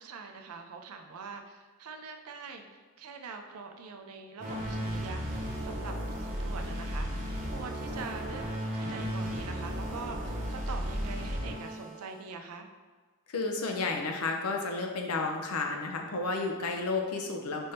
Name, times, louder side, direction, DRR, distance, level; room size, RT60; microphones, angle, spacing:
voice 1, 0.0-2.6 3.0-8.4 8.7-12.7, right 4 dB, 75° right, 5 dB, 0.5 m, -44 dB
sound 1, 4.4-12.1, equal, 35° right, 0.8 m, -35 dB
voice 2, 13.3-17.7, left 3 dB, 75° left, 2 dB, 0.6 m, -32 dB
5.3 x 3.4 x 2.7 m, 1.4 s
head